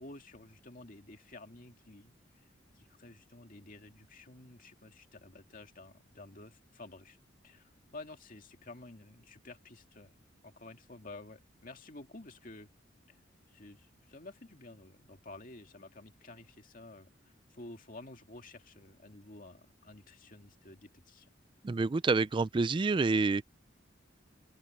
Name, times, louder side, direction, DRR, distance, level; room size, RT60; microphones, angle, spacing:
voice 1, 0.0-2.1 2.7-7.2 7.4-10.1 10.4-12.7 13.1-13.2 13.5-21.3, left 2 dB, 45° left, 2.2 m, -51 dB
voice 2, 21.6-23.4, right 3 dB, 25° right, 0.3 m, -28 dB
open air
head